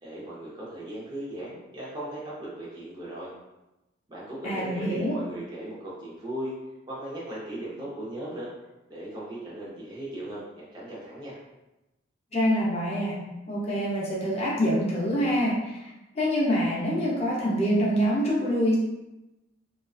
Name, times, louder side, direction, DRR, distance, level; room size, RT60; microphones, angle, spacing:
voice 1, 0.0-3.3 4.1-6.6 6.9-8.5 8.9-11.4, right 1 dB, 25° right, -7 dB, 0.6 m, -37 dB
voice 2, 4.4-5.1 12.3-13.2 13.5-15.8 16.2-18.8, equal, 35° left, -4 dB, 0.6 m, -25 dB
2.4 x 2.2 x 2.3 m, 0.98 s
head